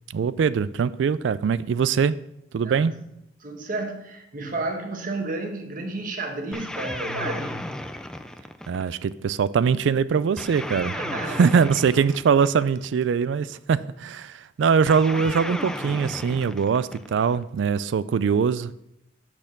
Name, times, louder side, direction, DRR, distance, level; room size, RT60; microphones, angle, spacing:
voice 1, 0.1-2.2 2.5-2.9 8.7-11.0 11.3-18.7, right 6 dB, 80° right, 0.3 m, -22 dB
voice 2, 3.4-7.7 10.8-11.5, right 2 dB, 45° right, 1.3 m, -31 dB
sound 1, 6.5-9.1 10.4-12.9 14.9-17.4, left 1 dB, 5° left, 0.4 m, -34 dB
6.4 x 6.0 x 6.7 m
head